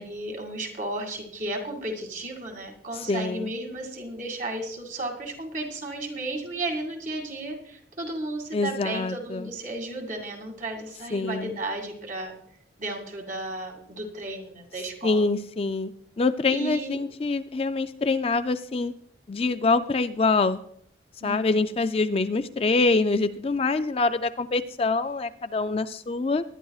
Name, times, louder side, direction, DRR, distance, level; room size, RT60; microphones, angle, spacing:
voice 1, 0.0-12.3 12.8-15.3 16.5-17.0 21.2-21.7, right 2 dB, 45° right, 2 dB, 2.3 m, -34 dB
voice 2, 3.1-3.5 8.5-9.5 11.1-11.6 15.0-15.9 16.2-18.9 19.3-20.6 21.2-26.4, left 3 dB, 30° left, 9 dB, 0.4 m, -25 dB
19.5 x 11.0 x 2.4 m, 0.65 s
head